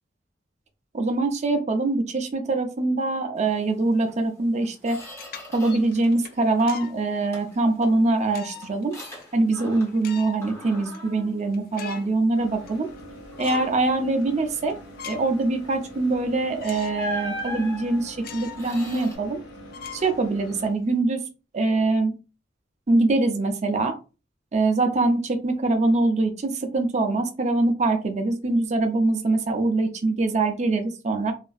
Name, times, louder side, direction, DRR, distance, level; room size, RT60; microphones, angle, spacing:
voice 1, 0.9-5.0 5.5-8.9 9.3-12.9 13.4-14.8 15.1-19.4 19.9-21.2 21.5-22.2 22.9-24.0 24.5-31.3, right 2 dB, 40° right, 5 dB, 0.5 m, -23 dB
Squeak, 4.0-4.2 4.6-6.0 6.3-6.9 7.3-10.1 10.4-12.2 12.7-12.9 13.3-13.9 16.1-16.2 16.9-19.2, left 1 dB, 15° left, 0.9 m, -40 dB
sound 1, 5.0-7.0 7.5-7.6 8.3-8.8 9.2-9.3 9.9-10.5 10.9-11.0 11.4-12.2 12.5-13.1 13.4-13.7 14.2-14.3 14.7-15.4 15.8-15.9 16.6-17.0 17.4-17.5 18.2-18.7 19.0-19.1 19.7-20.7, left 7 dB, 50° left, 0.3 m, -40 dB
sound 2, 12.3-20.7, equal, 80° left, 0.8 m, -44 dB
2.8 x 2.4 x 2.3 m, 0.32 s
head